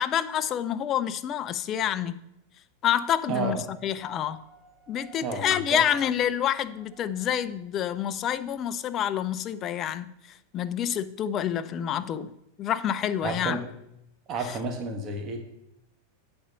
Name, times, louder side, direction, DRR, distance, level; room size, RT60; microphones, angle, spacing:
voice 1, 0.0-2.2 2.8-3.6 3.8-4.4 4.9-10.1 10.5-12.3 12.6-13.6, left 10 dB, 35° left, 0.5 m, -27 dB
voice 2, 3.3-3.6 5.2-5.8 13.2-13.7 14.3-15.4, right 3 dB, 35° right, 1.3 m, -31 dB
sound 1, 3.9-8.6, equal, 5° left, 3.1 m, -56 dB
8.3 x 4.4 x 6.9 m
hypercardioid pair, 100°, 0 cm